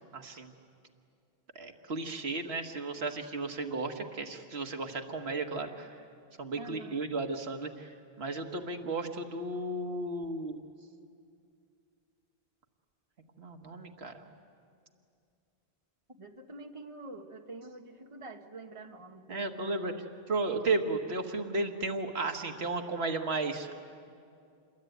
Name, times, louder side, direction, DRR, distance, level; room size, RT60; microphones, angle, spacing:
voice 1, 0.1-0.5 1.5-5.9 6.4-10.6 13.4-14.2 19.3-19.9 20.3-23.7, right 3 dB, 85° right, 5 dB, 1.7 m, -34 dB
voice 2, 6.6-7.1 16.2-19.7, right 2 dB, 30° right, 4 dB, 1.4 m, -46 dB
28.0 x 22.0 x 9.3 m, 2.4 s
omnidirectional pair, 1.0 m